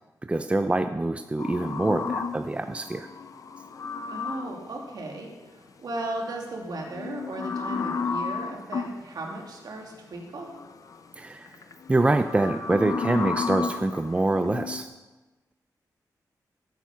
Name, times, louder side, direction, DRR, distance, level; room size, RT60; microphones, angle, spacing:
voice 1, 0.3-3.1 11.2-11.5 11.9-14.9, right 2 dB, 15° right, 8 dB, 0.5 m, -25 dB
sound 1, 1.4-4.7 6.8-9.0 10.4-11.0 11.5-14.8, left 5 dB, 55° left, 0.7 m, -33 dB
voice 2, 4.1-5.3 5.6-10.5, right 2 dB, 65° right, 0 dB, 2.5 m, -36 dB
12.0 x 9.2 x 5.7 m, 1.2 s
wide cardioid pair, 115°, 7 cm